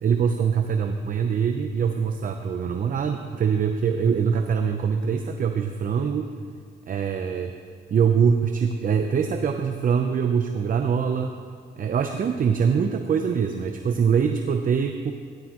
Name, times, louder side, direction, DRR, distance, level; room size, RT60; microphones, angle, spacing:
voice 1, 0.0-6.3 6.9-7.5 7.9-11.3 11.8-15.1, right 6 dB, 45° right, 6 dB, 0.7 m, -23 dB
17.0 x 11.5 x 3.0 m, 2.1 s
cardioid pair, 90°, 20 cm